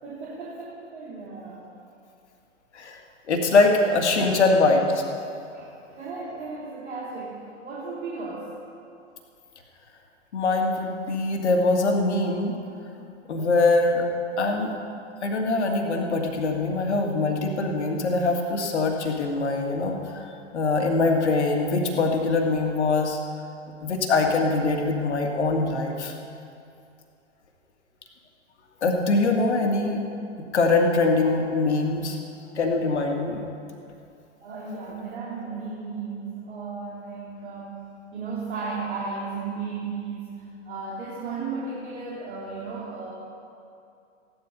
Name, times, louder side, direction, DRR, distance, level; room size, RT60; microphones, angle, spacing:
voice 1, 0.0-1.7 4.2-4.4 5.5-8.5 29.5-29.7 34.4-43.1, right 4 dB, 65° right, -6 dB, 3.1 m, -35 dB
voice 2, 3.3-5.0 10.3-12.6 13.3-14.1 14.4-14.7 15.2-20.2 20.5-23.2 23.8-26.1 28.8-30.0 30.4-32.2 32.5-33.4, left 3 dB, 65° left, 2 dB, 2.2 m, -23 dB
16.0 x 11.5 x 5.6 m, 2.5 s
figure-of-eight pair, 105°, 36 cm